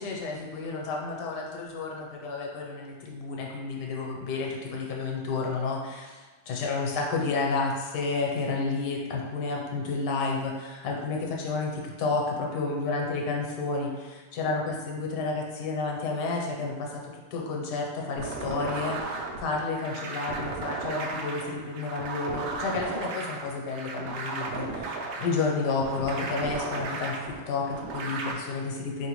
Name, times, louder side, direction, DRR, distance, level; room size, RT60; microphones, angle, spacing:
voice 1, 0.0-6.2 6.5-17.0 17.3-29.1, left 3 dB, 85° left, 0 dB, 1.4 m, -31 dB
sound 1, 18.2-28.3, right 3 dB, 80° right, 1.2 m, -35 dB
4.4 x 3.2 x 3.0 m, 1.3 s
omnidirectional pair, 1.8 m